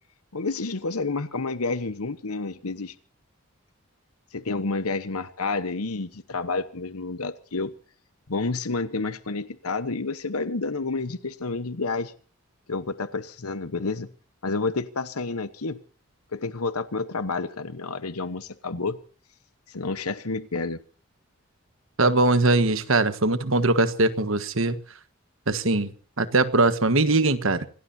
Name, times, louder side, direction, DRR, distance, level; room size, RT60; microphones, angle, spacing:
voice 1, 0.3-2.9 4.3-7.7 8.3-12.1 12.7-14.1 14.4-15.8 16.3-19.0 19.7-20.8, left 3 dB, 85° left, 12 dB, 1.1 m, -29 dB
voice 2, 22.0-24.8 25.5-27.7, right 2 dB, 65° right, 12 dB, 1.4 m, -21 dB
26.5 x 18.5 x 2.8 m, 0.41 s
head